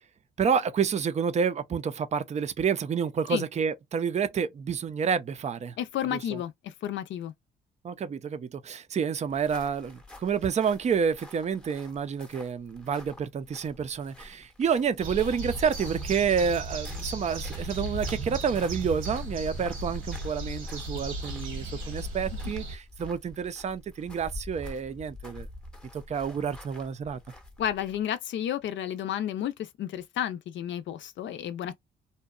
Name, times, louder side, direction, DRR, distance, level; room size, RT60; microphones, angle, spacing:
voice 1, 0.4-5.8 6.1-6.4 7.8-25.5 25.9-27.2, right 6 dB, 35° right, 0.5 m, -29 dB
voice 2, 5.8-7.3 27.6-31.7, left 10 dB, 70° left, 0.5 m, -32 dB
sound 1, 9.2-28.1, left 2 dB, 5° left, 0.7 m, -48 dB
sound 2, 15.0-22.8, right 1 dB, 85° right, 1.1 m, -36 dB
2.7 x 2.2 x 2.3 m
cardioid pair, 90°, 20 cm